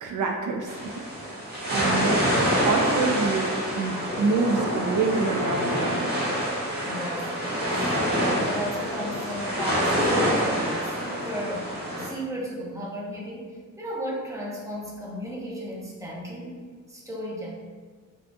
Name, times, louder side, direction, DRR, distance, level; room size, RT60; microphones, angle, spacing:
voice 1, 0.0-6.1, right 3 dB, 70° right, 2 dB, 0.5 m, -27 dB
sound 1, 0.7-12.1, equal, 30° right, 1.4 m, -26 dB
voice 2, 6.8-17.5, equal, 10° right, -5 dB, 0.9 m, -35 dB
5.0 x 2.7 x 2.3 m, 1.5 s
wide cardioid pair, 95°, 32 cm